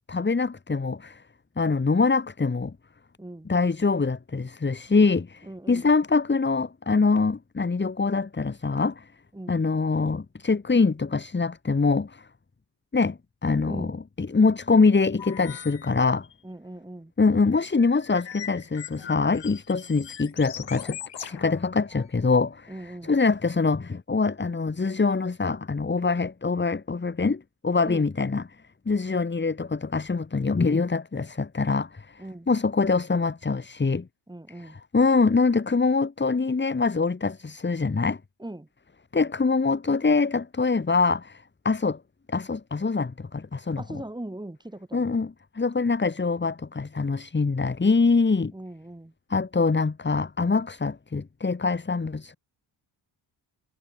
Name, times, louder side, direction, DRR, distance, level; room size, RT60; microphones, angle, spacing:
voice 1, 0.1-1.2 1.6-2.7 3.5-9.1 9.5-12.3 12.9-16.3 17.2-22.7 23.0-28.4 28.9-34.1 34.6-38.2 39.1-42.0 42.3-43.8 44.9-48.5 49.3-52.4, left 4 dB, 25° left, 2.0 m, -24 dB
voice 2, 3.2-3.5 5.4-5.9 9.3-9.6 13.6-14.0 16.4-17.1 22.7-23.1 27.8-28.1 32.2-32.5 34.3-34.8 38.4-38.7 43.8-45.1 48.5-49.1, right 1 dB, 10° right, 3.2 m, -40 dB
sound 1, 15.2-15.9 16.2-16.3 17.2-22.1, left 9 dB, 65° left, 5.8 m, -41 dB
cardioid pair, 95°, 45 cm